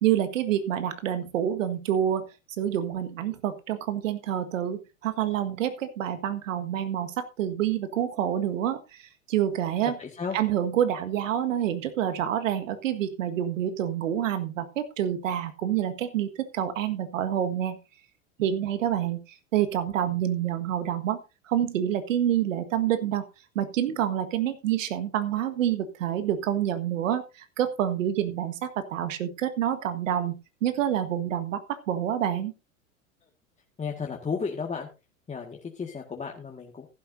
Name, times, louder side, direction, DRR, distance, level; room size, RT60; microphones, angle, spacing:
voice 1, 0.0-2.3 2.6-10.0 10.3-17.8 18.4-19.2 19.5-21.2 21.5-23.2 23.6-30.3 30.6-32.5, right 10 dB, 70° right, 11 dB, 1.8 m, -27 dB
voice 2, 9.9-10.4 33.8-34.9 35.3-36.9, left 5 dB, 15° left, 0 dB, 1.8 m, -33 dB
15.0 x 12.0 x 2.7 m, 0.28 s
hypercardioid pair, 95°, 40 cm